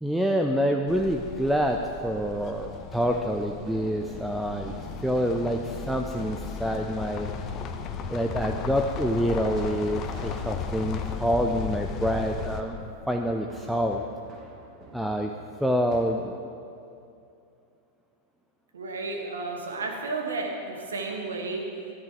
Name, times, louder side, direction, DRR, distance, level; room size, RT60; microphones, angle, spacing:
voice 1, 0.0-4.7 5.0-7.3 8.1-12.8 13.1-14.1 14.9-15.3 15.6-16.4, equal, ahead, 3 dB, 0.6 m, -27 dB
sound 1, 0.9-12.6, left 6 dB, 35° left, 0.9 m, -36 dB
sound 2, 1.4-16.0, right 3 dB, 30° right, 1.6 m, -49 dB
voice 2, 18.7-21.7, right 3 dB, 70° right, 1 dB, 1.8 m, -32 dB
13.5 x 10.5 x 5.0 m, 2.6 s
figure-of-eight pair, 90°, 0 cm